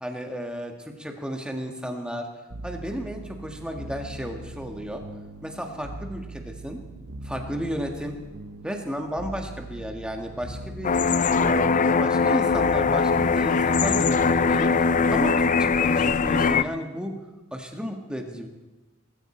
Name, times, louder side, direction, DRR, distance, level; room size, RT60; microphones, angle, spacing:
voice 1, 0.0-2.3 2.6-5.0 5.4-6.8 7.2-8.1 8.6-10.9 11.3-11.7 12.0-14.7 15.1-17.1 17.5-18.5, equal, 5° right, 3 dB, 1.6 m, -33 dB
sound 1, 2.5-15.8, right 2 dB, 60° right, 0.9 m, -41 dB
sound 2, 10.8-16.6, left 5 dB, 35° left, 0.4 m, -21 dB
19.0 x 15.5 x 4.4 m, 1.1 s
head